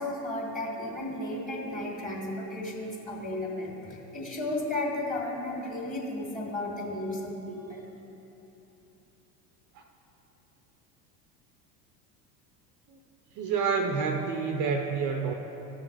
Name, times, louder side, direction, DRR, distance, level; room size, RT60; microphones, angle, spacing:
voice 1, 0.0-7.8, left 1 dB, 15° left, -2 dB, 2.2 m, -34 dB
voice 2, 13.3-15.3, right 5 dB, 40° right, 4 dB, 0.8 m, -28 dB
14.5 x 5.6 x 4.7 m, 3.0 s
figure-of-eight pair, 70°, 48 cm